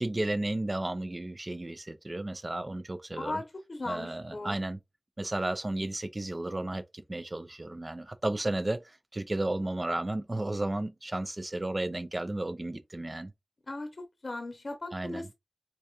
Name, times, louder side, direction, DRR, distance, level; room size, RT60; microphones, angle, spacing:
voice 1, 0.0-3.4 3.9-4.8 5.2-13.3 14.9-15.3, right 1 dB, 35° right, 0.5 m, -33 dB
voice 2, 3.7-4.6 13.7-13.9 14.2-15.3, left 2 dB, 60° left, 0.8 m, -37 dB
4.6 x 2.7 x 2.4 m
wide cardioid pair, 75°, 0 cm